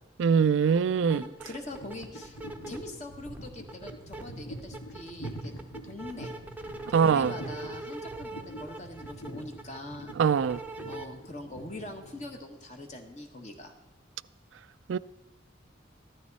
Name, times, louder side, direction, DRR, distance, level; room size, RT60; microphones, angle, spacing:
voice 1, 0.2-1.2 6.9-7.3 10.2-10.6 14.9-15.0, right 6 dB, 80° right, 0.3 m, -23 dB
sound 1, 0.7-0.8 1.1-2.9 3.2-4.2 4.6-11.0, right 2 dB, 10° right, 0.7 m, -42 dB
voice 2, 1.0-2.4 2.7-5.5 5.8-6.3 6.9-10.1 10.9-13.7, left 1 dB, 35° left, 1.5 m, -42 dB
sound 2, 1.7-12.6, right 1 dB, 75° left, 1.9 m, -45 dB
14.5 x 12.5 x 4.1 m
head